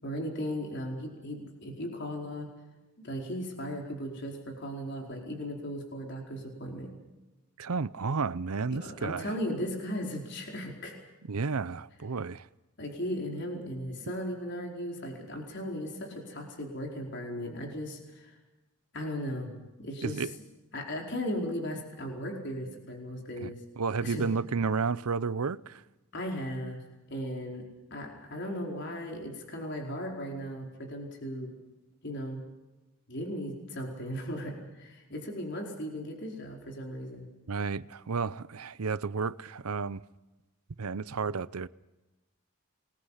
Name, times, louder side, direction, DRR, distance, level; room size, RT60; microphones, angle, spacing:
voice 1, 0.0-2.5 3.0-6.9 8.7-10.9 12.8-18.4 18.9-20.3 20.7-23.6 24.0-24.3 26.1-26.8 27.1-27.6 27.9-31.5 32.0-32.4 33.1-37.3, equal, 50° left, 4.6 m, -37 dB
voice 2, 7.6-9.3 11.3-12.5 20.0-20.3 23.4-25.8 37.5-40.0 40.8-41.7, right 4 dB, 85° right, 0.7 m, -32 dB
29.0 x 21.0 x 5.7 m
head